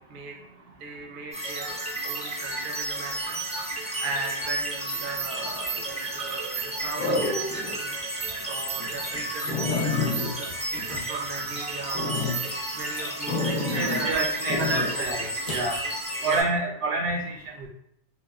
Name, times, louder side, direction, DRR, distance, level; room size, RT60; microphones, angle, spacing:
voice 1, 0.8-1.8 2.0-9.5 9.8-14.3 14.6-15.3 16.2-16.5, right 3 dB, 60° right, 0 dB, 0.6 m, -36 dB
sound 1, 1.3-16.4, right 2 dB, 10° right, 0.4 m, -32 dB
sound 2, 5.4-5.8 7.0-7.7 8.2-8.3 8.8-8.9 9.1-9.2 9.5-11.5 11.9-12.4 13.3-14.1 14.5-14.9 15.5-15.7, left 3 dB, 55° left, 0.8 m, -29 dB
voice 2, 13.7-14.6 15.0-15.2 15.5-15.8 16.2-17.7, right 2 dB, 80° right, 1 dB, 0.9 m, -28 dB
2.8 x 2.1 x 2.3 m, 0.74 s
omnidirectional pair, 1.2 m